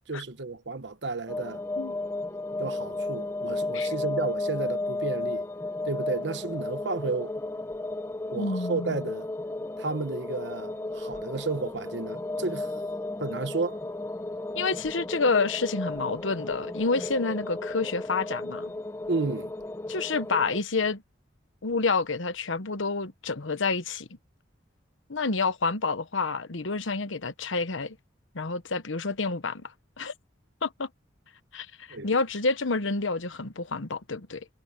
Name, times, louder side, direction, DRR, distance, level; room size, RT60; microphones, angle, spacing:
voice 1, 0.1-1.6 2.6-5.5 5.8-7.3 8.3-9.3 9.8-12.8 13.2-13.8 19.1-19.5 31.9-32.1, right 3 dB, 65° right, 1.1 m, -32 dB
sound 1, 1.3-20.6, left 2 dB, 15° left, 1.1 m, -34 dB
voice 2, 8.4-9.0 14.5-18.7 19.9-21.0 21.6-24.1 25.1-28.0 28.3-30.1 30.6-30.9 31.5-34.5, left 4 dB, 90° left, 1.2 m, -28 dB
head